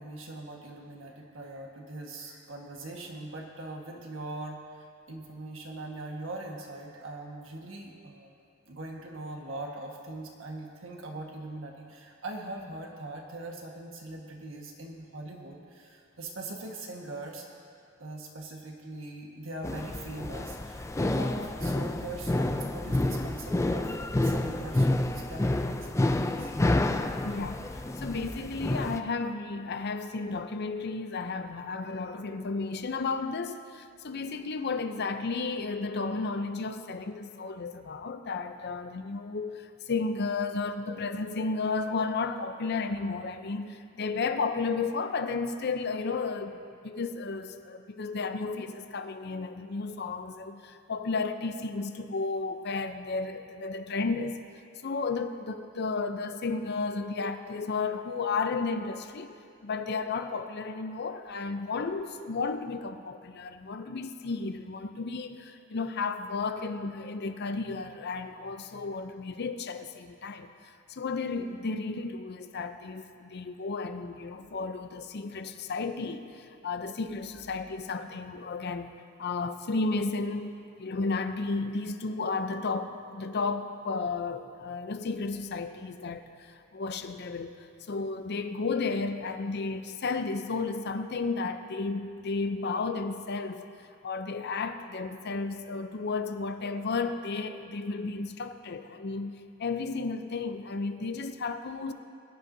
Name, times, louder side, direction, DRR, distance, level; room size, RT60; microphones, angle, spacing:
voice 1, 0.0-8.3 8.7-17.5 18.0-23.9 24.2-26.5 26.8-27.1, right 2 dB, 75° right, 0 dB, 1.6 m, -41 dB
sound 1, 19.6-29.0, left 1 dB, 15° left, 0.4 m, -29 dB
voice 2, 27.2-46.5 46.8-54.4 54.8-78.9 79.2-80.5 80.8-87.6 87.9-93.6 94.0-99.3 99.6-101.9, left 4 dB, 55° left, 8 dB, 0.6 m, -33 dB
21.0 x 10.0 x 2.7 m, 2.4 s
head